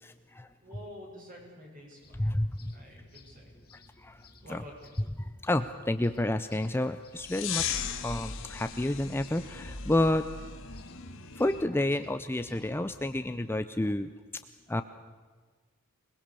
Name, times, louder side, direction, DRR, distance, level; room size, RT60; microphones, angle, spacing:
voice 1, 0.0-0.5 2.2-2.7 4.0-4.2 4.5-4.6 5.2-7.8 8.0-10.3 11.4-14.1 14.7-14.8, left 1 dB, 10° left, 10 dB, 0.6 m, -30 dB
voice 2, 0.6-2.3 2.7-3.5 4.4-4.9, equal, 40° right, -1 dB, 7.4 m, -48 dB
sound 1, 2.0-13.5, left 1 dB, 45° left, 2.5 m, -56 dB
sound 2, 7.2-11.6, left 7 dB, 60° left, 1.9 m, -37 dB
26.5 x 20.5 x 6.9 m, 1.5 s
head